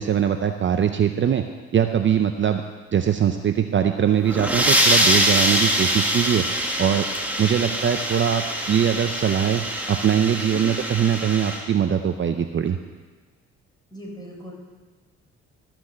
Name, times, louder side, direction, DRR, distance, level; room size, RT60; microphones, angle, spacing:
voice 1, 0.0-1.4 1.7-2.6 2.9-6.4 6.8-7.0 7.4-8.4 8.7-9.6 9.9-12.8, right 8 dB, 40° right, 7 dB, 0.7 m, -21 dB
sound 1, 4.1-11.6, equal, 5° right, 1.8 m, -23 dB
voice 2, 10.5-10.9 13.9-14.5, equal, 15° left, -3 dB, 4.3 m, -38 dB
13.5 x 6.1 x 7.6 m, 1.4 s
cardioid pair, 90°, 30 cm